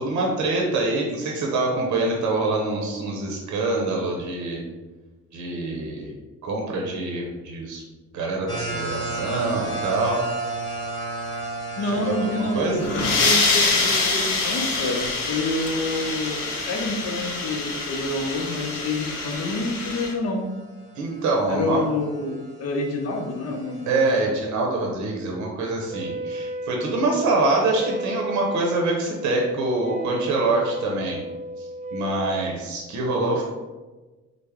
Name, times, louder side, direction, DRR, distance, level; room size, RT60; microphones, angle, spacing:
voice 1, 0.0-4.6 5.3-6.1 6.4-7.8 8.1-10.3 11.8-12.9 20.9-21.8 23.9-31.2 31.6-31.7 31.9-33.4, right 2 dB, 70° right, -1 dB, 0.7 m, -25 dB
sound 1, 8.5-19.4 19.9-20.0 20.6-24.2, right 2 dB, 15° left, 0.9 m, -35 dB
voice 2, 11.8-20.5 21.5-23.9, left 2 dB, 55° left, 3 dB, 0.6 m, -28 dB
sound 2, 12.6-20.1, left 3 dB, 90° left, 0.7 m, -25 dB
Wind instrument woodwind instrument, 25.9-32.5, right 1 dB, 25° right, 0.4 m, -33 dB
3.2 x 2.0 x 3.5 m, 1.2 s
cardioid pair, 90°, 30 cm